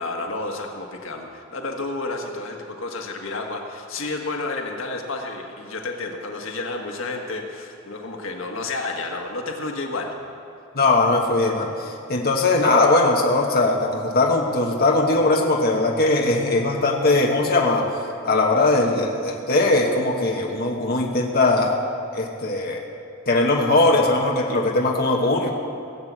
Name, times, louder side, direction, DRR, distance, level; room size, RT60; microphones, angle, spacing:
voice 1, 0.0-10.2, left 3 dB, 90° left, 2 dB, 1.6 m, -31 dB
voice 2, 10.7-17.9 18.2-21.7 22.1-22.9 23.3-25.5, left 2 dB, 50° left, 0 dB, 1.2 m, -20 dB
17.5 x 8.2 x 7.5 m, 2.6 s
head